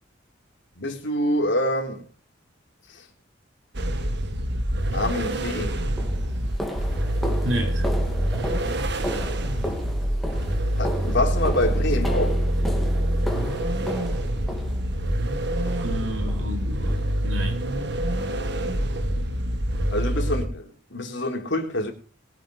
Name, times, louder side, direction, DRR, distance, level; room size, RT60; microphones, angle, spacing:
voice 1, 0.8-2.0 2.9-3.0 4.9-5.8 10.8-12.4 19.9-21.9, left 1 dB, 65° left, 3.7 m, -26 dB
sound 1, 3.7-20.5, right 1 dB, 60° right, 1.7 m, -26 dB
sound 2, 5.3-5.4 6.0-15.2 15.7-16.0 16.3-16.5 16.9-17.1 17.5-17.6 18.1-18.2, equal, ahead, 2.6 m, -35 dB
voice 2, 7.4-7.9 10.7-10.8 15.7-17.7, equal, 85° right, 4.3 m, -31 dB
21.5 x 8.3 x 5.2 m
head